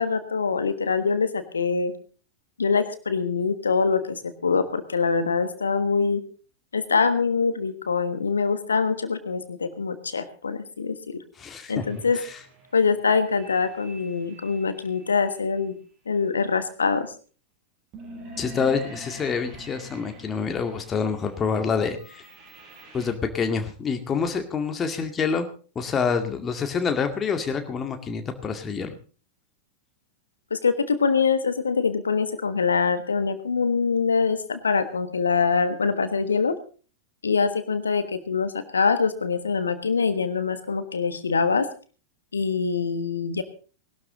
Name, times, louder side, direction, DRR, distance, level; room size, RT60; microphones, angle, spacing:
voice 1, 0.0-1.9 2.6-6.2 6.7-11.2 11.7-12.2 12.7-15.7 16.1-17.1 30.5-36.5 37.2-41.7 42.3-43.4, left 5 dB, 75° left, 12 dB, 1.4 m, -24 dB
voice 2, 11.4-11.8 18.4-22.3 22.9-25.5 25.8-28.9, left 5 dB, 20° left, 6 dB, 2.1 m, -27 dB
sound 1, 11.7-15.3 17.9-23.1, right 1 dB, 40° right, 5.9 m, -45 dB
19.5 x 12.5 x 3.9 m, 0.39 s
figure-of-eight pair, 90°, 0 cm